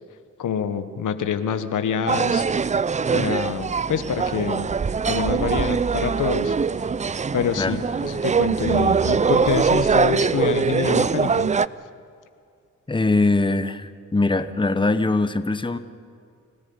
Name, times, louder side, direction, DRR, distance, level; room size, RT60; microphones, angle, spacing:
voice 1, 0.4-2.4 3.1-4.7 5.0-6.6 7.3-11.5, left 7 dB, 75° left, 10 dB, 1.2 m, -26 dB
sound 1, 2.1-11.7, right 5 dB, 25° right, 0.4 m, -22 dB
voice 2, 12.9-15.8, left 2 dB, 15° left, 11 dB, 1.0 m, -22 dB
25.5 x 13.5 x 8.7 m, 2.4 s
cardioid pair, 55°, 31 cm